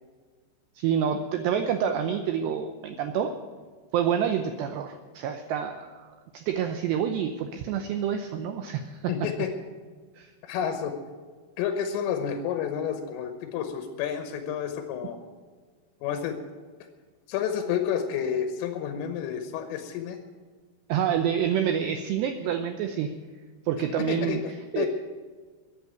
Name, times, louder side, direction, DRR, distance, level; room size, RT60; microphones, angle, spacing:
voice 1, 0.8-3.3 3.9-9.0 10.2-10.3 20.9-23.1 23.7-24.4 24.7-24.9, right 8 dB, 85° right, 7 dB, 2.4 m, -28 dB
voice 2, 9.1-9.5 10.4-10.9 11.6-15.2 16.0-16.4 17.3-20.2 24.0-24.9, left 8 dB, 80° left, 7 dB, 3.5 m, -30 dB
15.0 x 8.6 x 9.2 m, 1.5 s
omnidirectional pair, 6.0 m